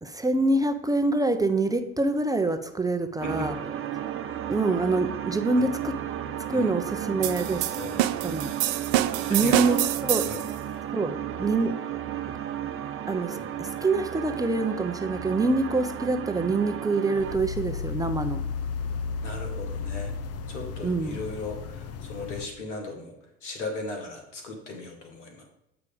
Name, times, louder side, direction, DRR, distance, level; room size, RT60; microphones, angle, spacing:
voice 1, 0.0-3.5 4.5-6.0 6.5-7.8 8.2-8.5 9.1-9.8 10.0-10.3 10.9-11.8 13.1-18.4 20.8-21.2, right 3 dB, 10° right, 9 dB, 0.7 m, -26 dB
voice 2, 3.2-3.7 5.5-5.7 6.5-6.7 7.8-8.1 8.4-8.6 9.3-9.8 10.3-10.4 13.3-13.5 19.2-20.1 20.5-23.1 23.4-25.4, left 2 dB, 90° left, 3 dB, 1.8 m, -37 dB
sound 1, 3.2-17.4, right 10 dB, 35° right, 0.8 m, -34 dB
sound 2, 7.2-10.5, right 14 dB, 70° right, 0.6 m, -26 dB
sound 3, 17.2-22.5, left 5 dB, 45° left, 0.8 m, -34 dB
8.1 x 4.9 x 5.2 m, 0.86 s
hypercardioid pair, 75°, 35 cm